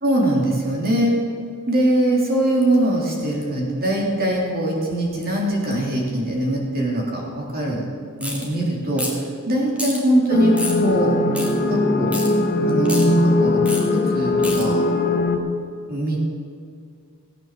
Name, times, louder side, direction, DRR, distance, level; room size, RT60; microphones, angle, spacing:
voice 1, 0.0-1.1 1.7-7.8 8.2-9.2 9.5-10.5 10.8-11.2 11.7-12.2 12.6-14.8 15.9-16.2, right 1 dB, 45° right, -2 dB, 3.6 m, -22 dB
sound 1, 8.2-8.4 9.0-9.3 9.8-10.0 10.6-10.8 11.3-11.5 12.1-12.3 12.8-13.0 13.7-13.8 14.4-14.6, left 1 dB, 5° right, 2.4 m, -28 dB
sound 2, 10.3-15.4, left 2 dB, 45° left, 1.3 m, -20 dB
17.0 x 9.0 x 7.6 m, 2.3 s
head